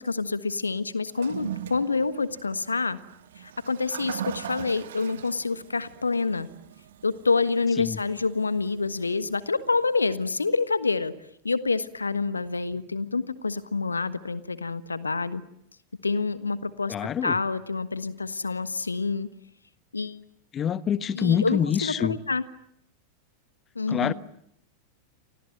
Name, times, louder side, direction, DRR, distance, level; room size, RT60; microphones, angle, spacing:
voice 1, 0.0-3.0 3.4-6.5 7.0-11.1 11.4-15.4 16.0-16.9 17.2-19.3 19.9-20.2 21.2-22.4 23.7-24.1, left 4 dB, 80° left, 1.4 m, -27 dB
Toilet flush, 1.1-10.4, right 11 dB, 60° right, 1.2 m, -41 dB
voice 2, 16.9-17.4 20.5-22.2 23.9-24.1, left 8 dB, 25° left, 1.2 m, -26 dB
29.5 x 26.0 x 7.7 m
figure-of-eight pair, 90°, 0 cm